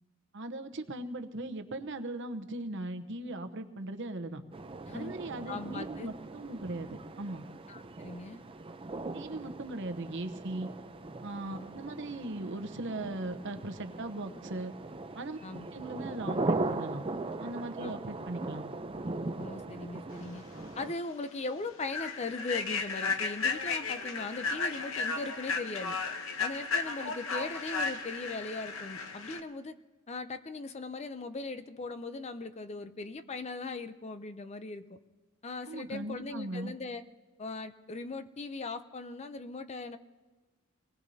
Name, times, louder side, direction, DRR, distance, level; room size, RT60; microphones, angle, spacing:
voice 1, 0.3-4.4 4.9-7.5 9.1-10.7 11.2-14.7 15.1-15.4 15.7-17.0 17.4-18.7 35.7-36.8, right 2 dB, 60° right, 8 dB, 0.9 m, -38 dB
sound 1, 4.5-20.9, right 2 dB, 25° right, 0.6 m, -39 dB
voice 2, 5.5-6.1 7.7-8.4 11.5-11.7 15.4-15.7 17.8-17.9 19.4-20.4 20.8-26.0 26.4-29.7 30.1-35.0 35.4-37.0 37.4-40.0, left 3 dB, 30° left, 10 dB, 0.5 m, -39 dB
Human voice / Train, 20.5-20.7 21.1-21.3 21.8-29.4, left 4 dB, 70° left, 0.9 m, -34 dB
26.5 x 19.5 x 2.8 m, 1.2 s
head